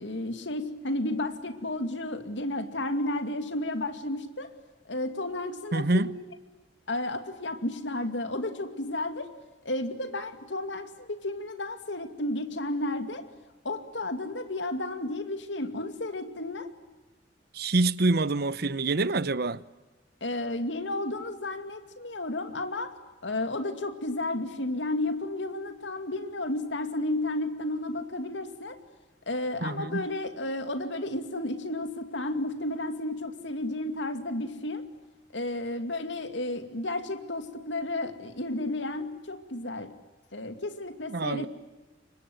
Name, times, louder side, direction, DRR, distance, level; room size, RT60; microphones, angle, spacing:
voice 1, 0.0-4.5 4.9-6.2 6.9-9.3 9.6-13.3 13.6-16.7 20.2-22.9 23.2-28.8 29.3-34.9 35.3-39.9 40.3-41.5, left 2 dB, 80° left, 2.6 m, -32 dB
voice 2, 5.7-6.1 17.5-19.6 29.6-30.1 41.1-41.5, right 2 dB, 60° right, 0.9 m, -26 dB
30.0 x 25.0 x 8.0 m
head